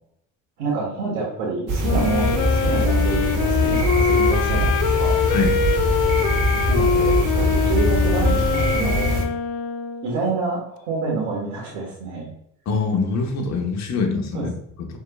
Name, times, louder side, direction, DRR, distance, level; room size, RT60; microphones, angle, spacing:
voice 1, 0.6-5.2 6.7-9.1 10.0-12.3 14.3-14.5, right 3 dB, 75° right, -5 dB, 1.4 m, -27 dB
sound 1, 1.7-9.2, equal, 50° right, 1.3 m, -22 dB
Wind instrument woodwind instrument, 1.8-10.2, left 8 dB, 65° left, 0.5 m, -23 dB
voice 2, 5.3-5.6 12.7-14.5, left 4 dB, 45° left, 3 dB, 1.0 m, -23 dB
4.8 x 3.6 x 2.3 m, 0.73 s
hypercardioid pair, 60°, 39 cm